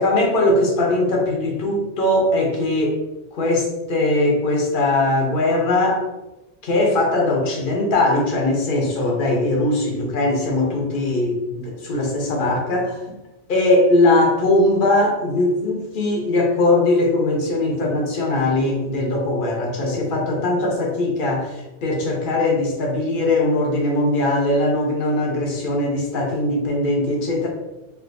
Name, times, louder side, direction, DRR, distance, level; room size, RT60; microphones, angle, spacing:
voice 1, 0.0-3.0 3.3-6.1 6.6-13.0 13.5-27.5, left 2 dB, 55° left, 0 dB, 0.8 m, -20 dB
3.2 x 2.5 x 2.5 m, 1.0 s
omnidirectional pair, 1.2 m